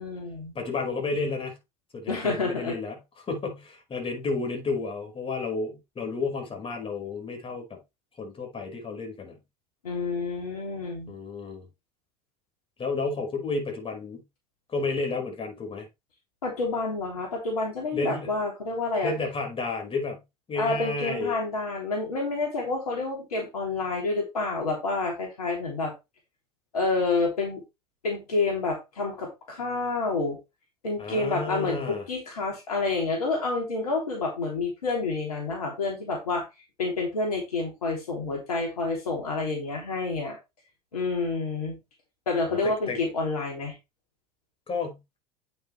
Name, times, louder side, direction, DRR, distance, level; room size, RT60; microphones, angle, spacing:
voice 1, 0.0-0.5 2.1-2.8 9.8-11.1 16.4-19.1 20.5-25.9 26.7-27.6 28.0-30.4 30.8-36.4 36.8-40.4 40.9-41.8 42.2-43.8, left 3 dB, 85° left, 3.3 m, -28 dB
voice 2, 0.6-1.5 1.9-7.8 8.2-9.4 11.1-11.7 12.8-14.2 14.7-15.9 17.9-18.3 19.0-20.2 20.5-21.4 31.0-32.0 42.4-43.0 44.7-45.2, left 3 dB, 30° left, 5.2 m, -31 dB
8.8 x 6.7 x 3.3 m
hypercardioid pair, 75°, 19 cm